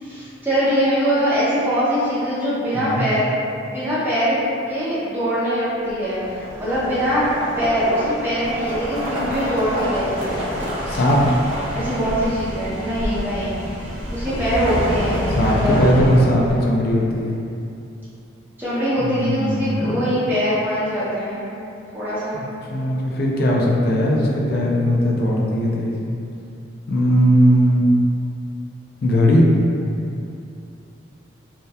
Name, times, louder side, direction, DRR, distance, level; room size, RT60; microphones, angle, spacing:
voice 1, 0.0-3.3 3.6-10.5 11.7-13.6 14.1-16.2 18.6-21.5 21.9-22.4, equal, 10° right, -11 dB, 0.6 m, -22 dB
voice 2, 2.7-3.0 10.9-11.4 15.4-17.3 19.0-20.0 22.3-22.4 22.7-25.9 26.9-27.9 29.0-29.5, equal, 50° left, -3 dB, 0.3 m, -18 dB
sound 1, 6.1-16.9, equal, 70° right, 0.7 m, -27 dB
2.7 x 2.1 x 2.2 m, 2.6 s
head